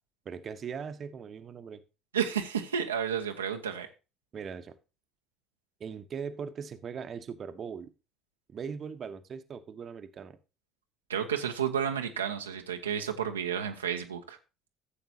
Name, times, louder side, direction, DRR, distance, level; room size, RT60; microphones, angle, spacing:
voice 1, 0.2-1.8 4.3-4.7 5.8-7.9 8.5-10.4, right 6 dB, 40° right, 10 dB, 1.0 m, -40 dB
voice 2, 2.1-3.9 11.1-14.4, right 8 dB, 75° right, 4 dB, 0.9 m, -31 dB
14.5 x 7.8 x 2.8 m, 0.30 s
figure-of-eight pair, 55°, 0 cm